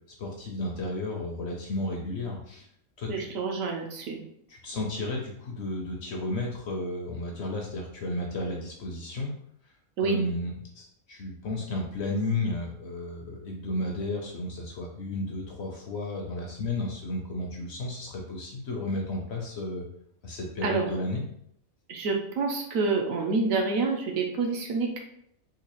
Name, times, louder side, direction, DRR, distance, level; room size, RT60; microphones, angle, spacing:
voice 1, 0.2-2.7 3.0-3.3 4.5-9.3 10.0-19.9 20.2-21.2, left 2 dB, 60° left, 0 dB, 0.8 m, -33 dB
voice 2, 3.1-4.2 10.0-10.2 20.6-20.9 21.9-25.0, right 4 dB, 75° right, 2 dB, 1.0 m, -28 dB
3.8 x 2.4 x 3.0 m, 0.70 s
omnidirectional pair, 1.5 m